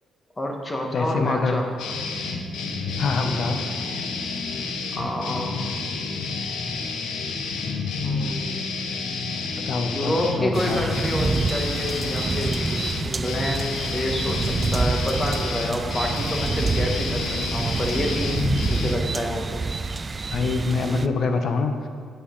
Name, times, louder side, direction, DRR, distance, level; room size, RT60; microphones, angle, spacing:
voice 1, 0.4-1.6 4.9-5.6 8.0-8.6 9.9-19.6, left 1 dB, 20° left, 1 dB, 1.5 m, -28 dB
voice 2, 0.9-1.6 3.0-3.6 9.6-10.8 20.3-21.9, left 4 dB, 60° left, 6 dB, 0.9 m, -25 dB
sound 1, 1.8-19.0, left 4 dB, 85° left, 0.9 m, -30 dB
sound 2, 1.8-11.7, right 1 dB, 5° right, 2.3 m, -40 dB
sound 3, 10.5-21.1, right 4 dB, 30° right, 0.4 m, -27 dB
9.7 x 8.2 x 3.9 m, 2.1 s
cardioid pair, 90°, 0 cm